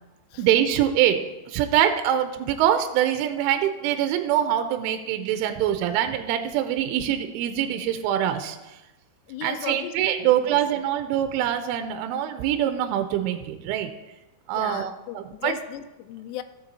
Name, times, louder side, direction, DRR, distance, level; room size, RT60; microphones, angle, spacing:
voice 1, 0.4-8.8 9.4-13.9 14.5-15.5, right 11 dB, 85° right, 8 dB, 3.0 m, -24 dB
voice 2, 9.3-10.6 14.5-16.4, left 11 dB, 85° left, 11 dB, 3.0 m, -37 dB
16.0 x 7.1 x 2.7 m, 1.1 s
omnidirectional pair, 5.7 m